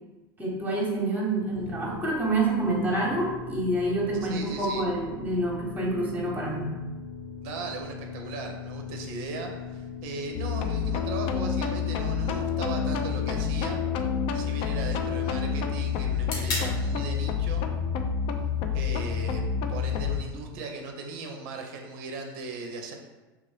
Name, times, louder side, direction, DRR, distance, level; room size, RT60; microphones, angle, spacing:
voice 1, 0.4-6.7, right 2 dB, 15° right, -1 dB, 0.9 m, -27 dB
sound 1, 1.5-20.3, left 6 dB, 90° left, 1.0 m, -42 dB
voice 2, 4.2-4.8 7.4-13.8 14.3-17.6 18.7-19.4 19.7-22.9, right 4 dB, 55° right, 3 dB, 0.5 m, -38 dB
sound 2, 10.3-20.2, left 6 dB, 45° left, 0.3 m, -28 dB
sound 3, 12.2-20.2, left 2 dB, 60° left, 1.1 m, -42 dB
3.1 x 2.5 x 3.3 m, 1.2 s
hypercardioid pair, 85°, 12 cm